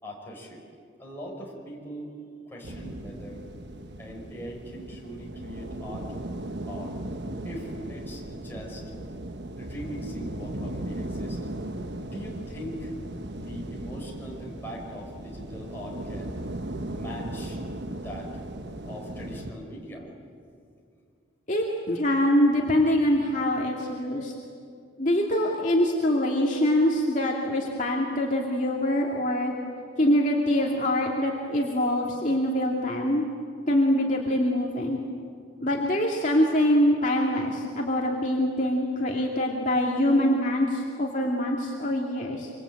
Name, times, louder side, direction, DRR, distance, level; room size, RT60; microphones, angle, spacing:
voice 1, 0.0-0.6 1.0-2.1 2.5-3.4 4.0-6.1 6.7-7.0 7.4-8.8 9.6-11.4 12.0-12.9 13.4-16.4 16.9-17.6 17.9-18.3 18.9-20.1, equal, 10° left, -2 dB, 5.3 m, -40 dB
sound 1, 2.6-19.5, right 1 dB, 65° right, 1.2 m, -37 dB
voice 2, 21.5-24.3 25.0-29.5 30.0-33.3 33.7-35.0 35.6-42.5, left 1 dB, 40° left, -2 dB, 2.3 m, -24 dB
25.5 x 25.5 x 8.7 m, 2.4 s
head